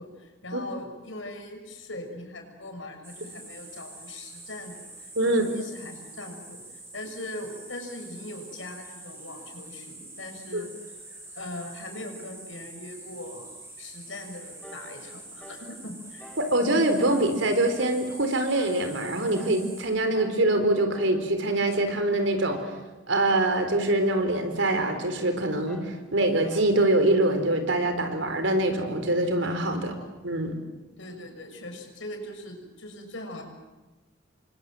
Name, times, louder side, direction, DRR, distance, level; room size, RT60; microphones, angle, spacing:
voice 1, 0.0-6.6 6.9-10.7 11.4-16.3 29.9-30.1 31.0-33.4, left 1 dB, 80° left, 4 dB, 6.3 m, -40 dB
sound 1, 3.0-19.8, right 2 dB, 15° right, 7.9 m, -45 dB
sound 2, 14.6-14.9 15.4-15.7 16.2-16.5 17.0-17.3 17.8-18.1 18.5-18.9 19.3-19.6 20.1-20.4 20.9-21.2 21.7-22.0 22.5-22.8 23.3-23.6 24.1-24.4 24.9-25.2 25.7-26.0 26.4-26.8, equal, 5° left, 4.0 m, -47 dB
voice 2, 16.4-22.6 23.1-29.9 30.2-30.5, right 1 dB, 75° right, 7 dB, 4.1 m, -24 dB
29.0 x 24.5 x 7.7 m, 1.1 s
head